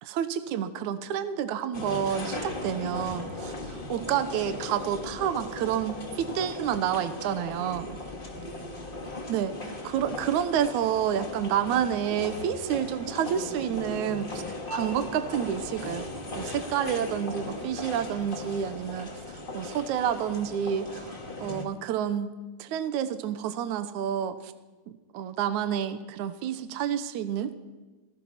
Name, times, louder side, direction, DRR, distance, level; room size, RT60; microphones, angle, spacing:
voice 1, 0.0-8.0 9.3-16.1 16.3-21.2 21.4-22.3 22.6-24.5 24.9-27.5, right 9 dB, 75° right, 10 dB, 1.8 m, -29 dB
sound 1, 1.7-21.7, left 2 dB, 30° left, 1.0 m, -37 dB
28.0 x 19.0 x 5.9 m, 1.2 s
omnidirectional pair, 4.7 m